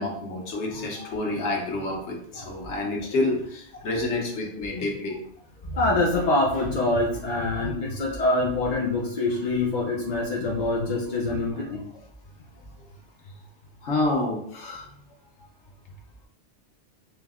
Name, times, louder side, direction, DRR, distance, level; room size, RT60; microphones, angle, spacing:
voice 1, 0.0-5.2 13.8-14.9, left 2 dB, 80° left, 0 dB, 1.2 m, -28 dB
voice 2, 5.7-11.8, left 2 dB, 45° left, -3 dB, 0.6 m, -25 dB
4.5 x 2.1 x 3.5 m, 0.68 s
omnidirectional pair, 1.2 m